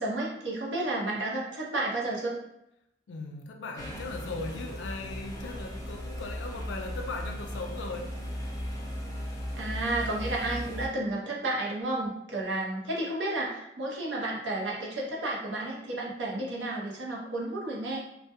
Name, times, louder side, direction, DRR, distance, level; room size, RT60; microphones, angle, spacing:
voice 1, 0.0-2.4 9.6-18.0, right 2 dB, 75° right, -3 dB, 0.6 m, -32 dB
voice 2, 3.1-8.4, left 3 dB, 80° left, 3 dB, 0.4 m, -38 dB
sound 1, 3.8-10.9, equal, 20° left, 0.5 m, -37 dB
2.2 x 2.1 x 2.8 m, 0.82 s
head